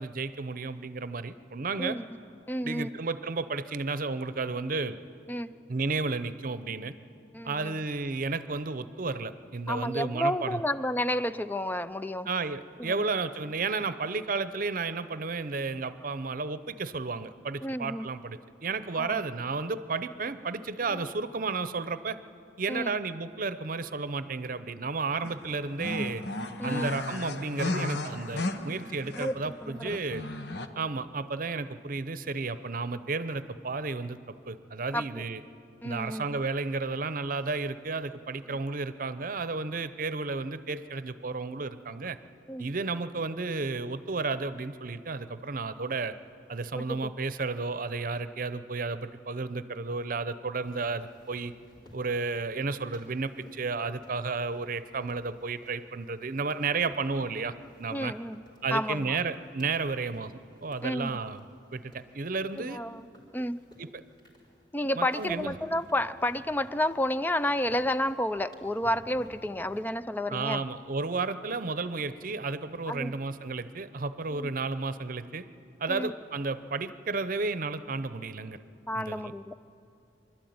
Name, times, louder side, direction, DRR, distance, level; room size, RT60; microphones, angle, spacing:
voice 1, 0.0-2.0 2.6-5.0 5.7-6.9 7.4-10.6 12.3-22.2 22.6-26.3 26.6-30.2 30.8-35.4 35.8-42.2 42.6-46.1 46.5-51.5 51.9-58.1 58.6-60.3 60.6-61.4 61.7-62.8 63.8-63.9 65.0-65.6 70.3-75.4 75.8-78.6 78.9-79.3, right 4 dB, 50° right, 13 dB, 0.7 m, -32 dB
voice 2, 2.5-2.9 5.3-5.5 7.3-7.7 9.7-12.3 12.9-13.0 17.6-18.1 19.0-19.2 20.9-21.0 22.7-22.9 26.6-27.0 29.2-30.0 34.9-35.0 35.8-36.4 42.5-42.7 46.7-46.9 57.9-58.4 58.7-59.2 60.8-61.1 62.6-63.1 63.3-63.6 64.7-70.6 72.9-73.1 74.4-74.5 75.9-76.1 78.9-79.5, left 1 dB, 10° left, 13 dB, 0.4 m, -31 dB
sound 1, 25.2-29.5 29.8-30.7, left 2 dB, 70° left, 1.0 m, -34 dB
sound 2, 50.6-69.9, equal, 25° left, 3.5 m, -57 dB
25.0 x 12.5 x 9.5 m, 2.7 s
head